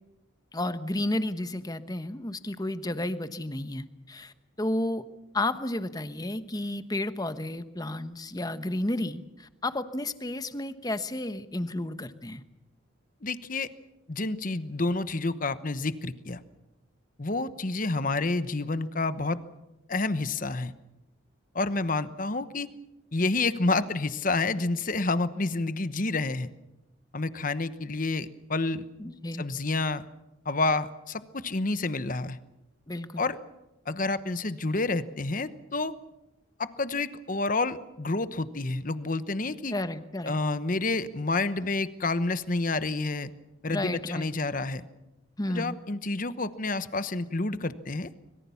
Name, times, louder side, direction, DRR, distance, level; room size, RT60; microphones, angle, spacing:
voice 1, 0.5-5.0 5.3-12.4 29.0-29.4 32.9-33.2 39.7-40.3 43.7-44.3 45.4-45.8, left 1 dB, 20° left, 11 dB, 1.1 m, -32 dB
voice 2, 13.2-13.7 14.1-16.4 17.2-19.4 19.9-20.7 21.5-22.7 23.1-26.5 27.1-28.9 29.4-30.1 30.4-32.4 33.2-33.4 33.9-35.9 36.6-39.7 40.2-43.3 43.6-44.8 45.5-48.1, left 3 dB, 45° left, 13 dB, 1.0 m, -29 dB
25.0 x 22.5 x 7.1 m, 0.94 s
head